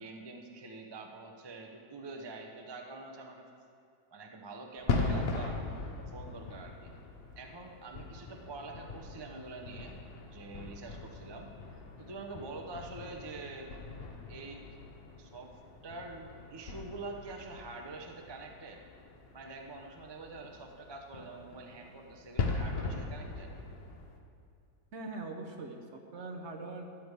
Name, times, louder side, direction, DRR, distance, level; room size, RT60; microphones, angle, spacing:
voice 1, 0.0-3.5 4.1-5.6 6.1-6.9 7.4-10.0 10.3-11.5 12.0-13.7 14.3-14.7 15.2-18.8 19.3-23.5, right 3 dB, 35° right, 2 dB, 0.4 m, -46 dB
sound 1, 4.8-24.2, left 3 dB, 45° left, 0.9 m, -40 dB
voice 2, 24.9-26.8, right 3 dB, 50° right, 2 dB, 0.9 m, -42 dB
13.0 x 5.2 x 8.3 m, 2.4 s
omnidirectional pair, 1.9 m